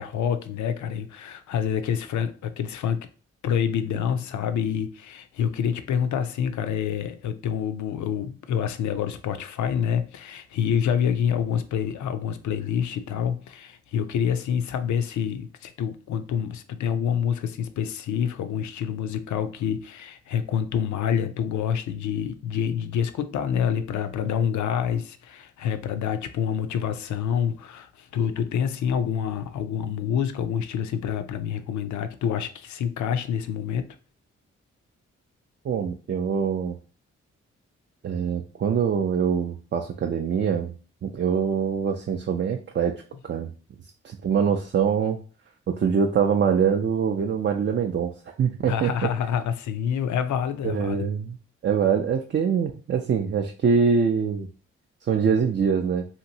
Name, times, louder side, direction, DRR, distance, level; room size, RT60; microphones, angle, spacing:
voice 1, 0.0-3.1 3.4-33.9 48.7-51.1, left 8 dB, 70° left, 0.5 m, -27 dB
voice 2, 35.6-36.8 38.0-40.7 41.0-42.9 43.3-43.5 44.0-45.2 45.7-48.1 48.4-49.1 50.6-51.4 51.6-54.5 55.0-56.1, right 6 dB, 35° right, 0.4 m, -24 dB
2.9 x 2.5 x 2.8 m
supercardioid pair, 45°, 31 cm